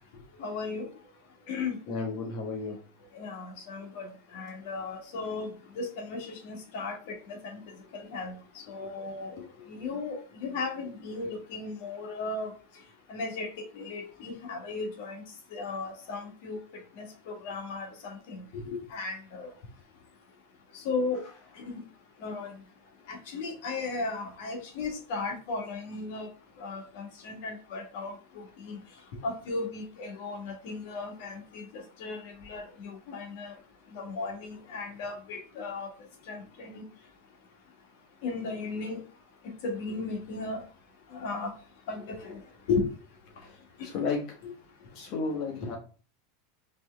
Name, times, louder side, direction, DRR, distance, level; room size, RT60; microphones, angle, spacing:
voice 1, 0.4-0.9 1.5-1.7 3.1-7.6 7.9-9.3 9.7-12.5 13.1-15.2 15.5-16.6 16.9-19.5 20.7-21.2 21.5-21.8 22.2-22.5 23.1-26.3 26.6-28.8 29.2-33.6 33.9-35.9 36.3-36.8 38.2-39.0 39.4-40.6 41.1-41.5 41.9-42.4 42.7-42.9 43.8-43.9 44.4-44.5, left 3 dB, 60° left, 2 dB, 1.3 m, -36 dB
voice 2, 1.9-2.8 9.4-9.7 43.4-43.6 43.8-44.2 44.9-45.8, left 4 dB, 45° left, 0 dB, 1.3 m, -33 dB
4.3 x 3.2 x 3.3 m, 0.37 s
supercardioid pair, 155°, 0 cm